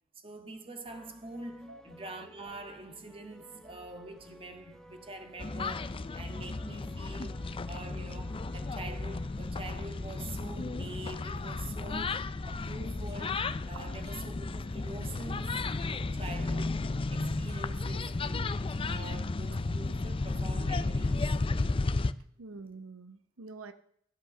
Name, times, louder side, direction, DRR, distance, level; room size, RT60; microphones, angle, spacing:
voice 1, 0.1-18.5 18.9-21.8, right 2 dB, 25° right, 1.6 m, -45 dB
sound 1, 0.8-9.9, right 1 dB, 5° left, 0.9 m, -55 dB
sound 2, 5.4-22.1, left 3 dB, 25° left, 0.4 m, -33 dB
Rattle, 12.0-12.5 13.0-13.4 14.0-14.4 15.0-15.5 16.2-16.6 17.4-17.9 18.6-19.2, right 2 dB, 45° right, 6.1 m, -64 dB
voice 2, 22.4-23.7, right 3 dB, 75° right, 0.9 m, -46 dB
14.0 x 8.0 x 6.3 m
head